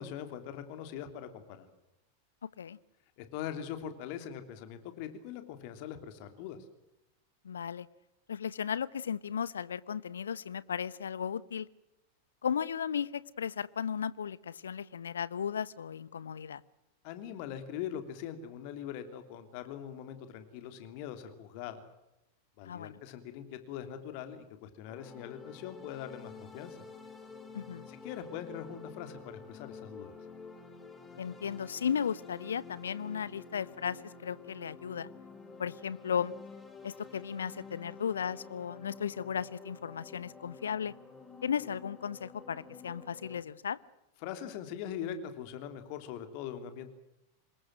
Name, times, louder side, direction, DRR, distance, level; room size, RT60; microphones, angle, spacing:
voice 1, 0.0-1.7 3.2-6.6 17.0-21.8 22.6-26.8 27.9-30.1 44.2-46.9, left 9 dB, 45° left, 9 dB, 3.2 m, -42 dB
voice 2, 7.4-7.9 8.3-11.7 12.4-16.6 22.6-23.0 27.5-27.9 31.2-35.1 35.6-36.3 36.8-40.9 41.4-43.8, left 7 dB, 70° left, 20 dB, 0.9 m, -35 dB
sound 1, 24.9-43.4, left 5 dB, 15° left, 3.8 m, -50 dB
26.5 x 21.5 x 7.7 m, 0.90 s
figure-of-eight pair, 90°, 0 cm